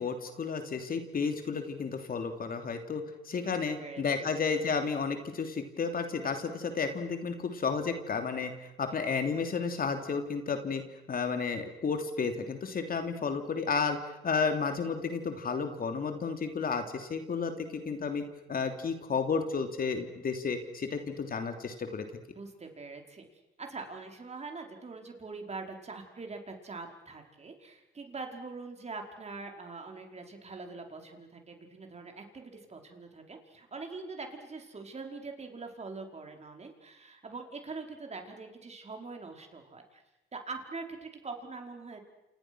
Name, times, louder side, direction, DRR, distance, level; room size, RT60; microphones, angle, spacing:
voice 1, 0.0-8.5 8.8-10.8 11.1-22.0, left 5 dB, 45° left, 6 dB, 3.1 m, -32 dB
voice 2, 3.4-4.3 22.3-23.3 23.6-40.0 40.3-42.0, right 3 dB, 35° right, 3 dB, 5.2 m, -43 dB
28.5 x 28.0 x 6.4 m, 0.94 s
cardioid pair, 90°, 20 cm